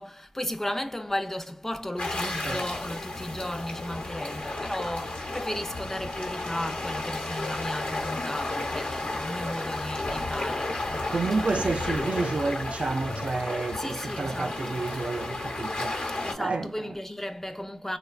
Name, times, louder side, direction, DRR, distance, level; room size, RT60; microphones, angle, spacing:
voice 1, 0.0-11.4 13.8-14.9 16.2-18.0, left 1 dB, 15° left, 0.4 m, -35 dB
sound 1, 2.0-16.3, left 2 dB, 80° left, 0.8 m, -33 dB
voice 2, 2.2-2.6 11.1-16.0 16.4-16.9, right 3 dB, 65° right, 0.3 m, -30 dB
3.1 x 2.1 x 2.3 m
cardioid pair, 45°, 2 cm